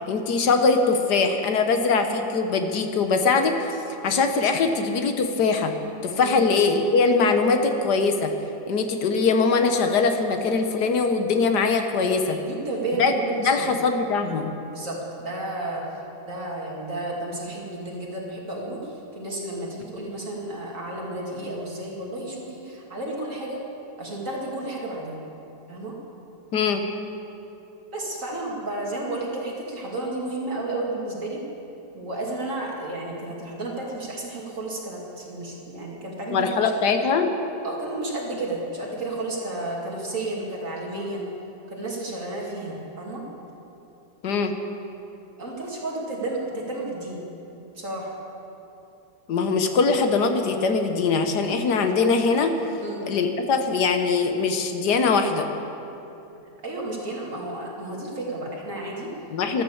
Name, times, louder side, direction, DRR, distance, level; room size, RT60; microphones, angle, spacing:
voice 1, 0.1-3.8 4.0-5.7 6.0-8.3 8.7-12.4 13.0-14.5 26.5-26.9 36.3-37.3 44.2-44.6 49.3-52.5 53.1-55.5 59.3-59.6, left 4 dB, 75° left, 6 dB, 1.6 m, -22 dB
voice 2, 12.3-13.7 14.7-23.6 24.0-25.2 25.7-25.9 27.9-31.4 31.9-36.6 37.6-41.3 41.7-43.2 45.4-47.2 47.7-48.2 52.8-53.1 56.6-59.1 59.5-59.6, right 2 dB, 50° right, -3 dB, 2.8 m, -32 dB
13.5 x 12.5 x 7.2 m, 2.9 s
omnidirectional pair, 1.8 m